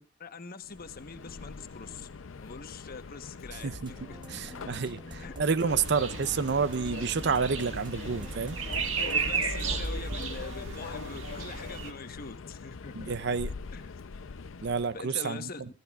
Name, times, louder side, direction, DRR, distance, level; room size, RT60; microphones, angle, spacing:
voice 1, 0.2-2.1 2.4-4.2 5.2-5.4 9.0-13.1 13.7-14.0 14.9-15.6, left 4 dB, 50° left, 1.1 m, -43 dB
Subway metro underground, 0.6-15.0, left 4 dB, 80° left, 0.6 m, -42 dB
sound 1, 3.4-10.2, right 1 dB, 25° right, 1.1 m, -49 dB
voice 2, 4.3-8.6 13.0-13.5 14.6-15.5, right 5 dB, 60° right, 0.6 m, -29 dB
sound 2, 5.7-11.9, right 5 dB, 75° right, 1.7 m, -34 dB
25.0 x 14.5 x 2.4 m
head